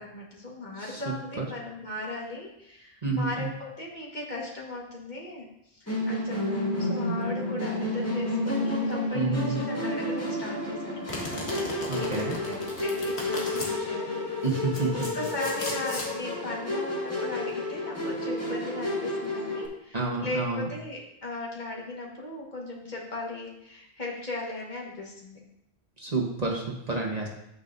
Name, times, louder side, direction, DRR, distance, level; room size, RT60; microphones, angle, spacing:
voice 1, 0.0-14.3 14.9-25.4, left 2 dB, 45° left, -3 dB, 1.6 m, -38 dB
voice 2, 3.0-3.5 9.1-9.6 11.9-12.4 14.4-15.1 19.9-20.6 26.0-27.3, right 3 dB, 40° right, -1 dB, 1.2 m, -29 dB
Musical instrument, 5.9-19.7, left 1 dB, 15° left, 1.5 m, -31 dB
Domestic sounds home sounds, 11.1-13.7 14.4-16.1, left 1 dB, 80° left, 1.8 m, -37 dB
8.8 x 7.1 x 2.6 m, 0.80 s
omnidirectional pair, 1.1 m